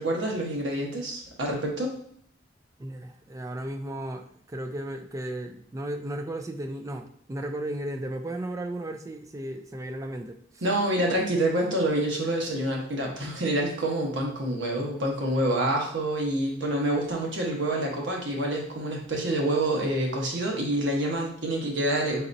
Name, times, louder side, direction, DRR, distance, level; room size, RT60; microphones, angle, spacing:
voice 1, 0.0-1.9 10.6-22.3, right 1 dB, 85° right, -1 dB, 1.1 m, -27 dB
voice 2, 2.8-10.4, right 1 dB, 15° right, 6 dB, 0.3 m, -35 dB
4.0 x 4.0 x 2.6 m, 0.63 s
head